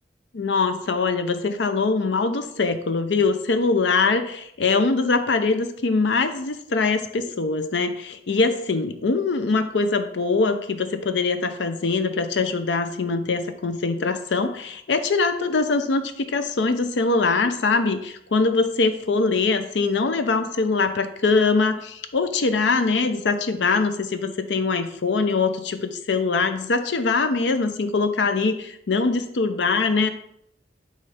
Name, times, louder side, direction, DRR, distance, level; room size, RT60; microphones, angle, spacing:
voice 1, 0.3-30.1, left 4 dB, 85° left, 9 dB, 0.6 m, -23 dB
6.4 x 3.2 x 5.0 m, 0.73 s
head